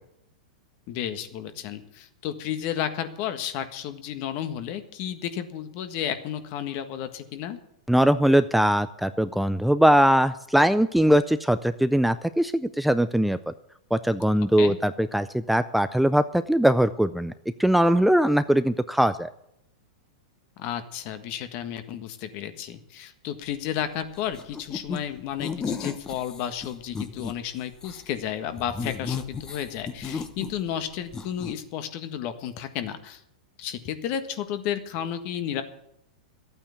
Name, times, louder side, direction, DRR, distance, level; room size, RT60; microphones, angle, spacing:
voice 1, 0.9-7.6 14.6-14.8 20.6-33.2 33.6-35.6, left 10 dB, 45° left, 9 dB, 1.5 m, -32 dB
voice 2, 7.9-13.5 13.9-17.3 17.6-19.3, equal, ahead, 11 dB, 0.4 m, -21 dB
sound 1, 24.3-25.0 25.4-27.3 27.7-28.0 28.6-30.8 31.1-31.5, left 5 dB, 20° left, 1.1 m, -34 dB
12.5 x 8.8 x 8.3 m, 0.77 s
hypercardioid pair, 125°, 4 cm